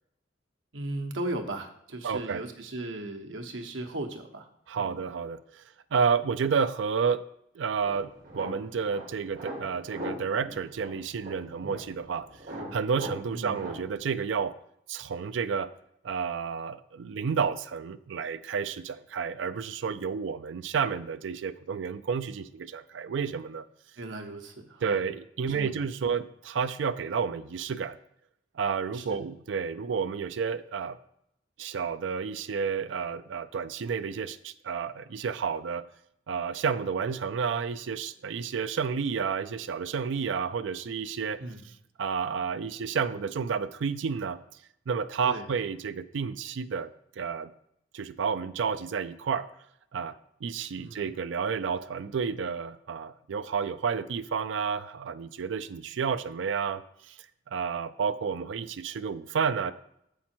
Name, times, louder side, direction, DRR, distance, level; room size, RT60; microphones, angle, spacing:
voice 1, 0.7-4.5 4.7-5.0 13.3-13.7 24.0-25.1 25.4-26.1 28.9-29.2 41.4-41.7 45.2-45.5 50.8-51.1, right 2 dB, 90° right, 4 dB, 1.1 m, -37 dB
voice 2, 2.0-2.4 4.7-5.6 5.9-7.3 7.5-12.3 12.7-14.6 14.9-15.7 16.0-23.6 24.8-28.0 28.5-31.0 31.6-35.9 36.3-41.4 42.0-44.4 44.9-47.5 47.9-49.5 49.9-59.7, right 6 dB, 70° right, 12 dB, 0.4 m, -31 dB
sound 1, 7.8-13.9, right 1 dB, 50° right, 1.6 m, -41 dB
7.4 x 5.7 x 4.4 m, 0.75 s
head